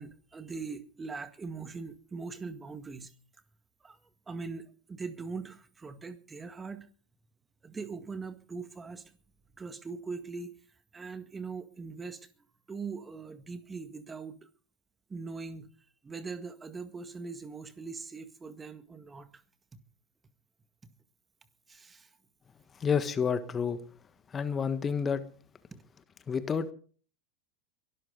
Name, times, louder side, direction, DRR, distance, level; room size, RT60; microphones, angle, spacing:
voice 1, 0.0-3.1 3.8-4.0 4.3-6.9 7.6-9.1 9.5-10.6 10.9-12.3 12.7-14.5 15.1-15.7 16.0-19.4 21.7-22.1 25.7-25.8, right 4 dB, 20° right, 1.8 m, -41 dB
voice 2, 22.8-23.8 24.3-25.2 26.3-26.7, left 6 dB, 25° left, 1.4 m, -29 dB
23.0 x 13.0 x 4.0 m
figure-of-eight pair, 85°, 0 cm